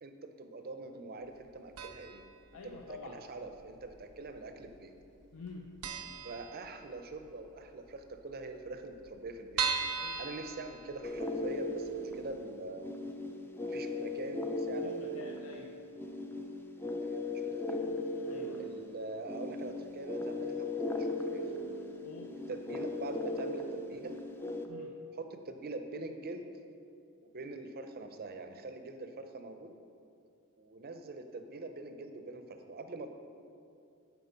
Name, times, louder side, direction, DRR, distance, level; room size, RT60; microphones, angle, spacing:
voice 1, 0.0-2.2 2.6-4.9 6.2-9.7 10.2-12.9 13.6-15.1 17.0-17.8 18.6-21.4 22.5-24.1 25.1-26.4 27.2-29.7 30.6-33.1, right 3 dB, 45° right, 7 dB, 0.5 m, -44 dB
sound 1, 1.8-2.3 2.6-2.7 3.6-4.3 4.6-4.7 5.0-5.1 5.5-5.6 5.8-7.1 7.5-7.6 7.9-8.0 8.2-8.3 8.8-11.4 11.9-12.0 12.3-12.4, right 5 dB, 90° right, 0.6 m, -37 dB
voice 2, 2.5-3.2 5.3-5.8 9.9-10.2 14.8-15.7 18.3-18.6 22.0-22.3 24.7-25.0, left 4 dB, 65° left, 1 dB, 0.5 m, -48 dB
sound 2, 11.0-24.7, left 2 dB, 10° left, 0.4 m, -38 dB
8.1 x 4.6 x 5.3 m, 2.5 s
head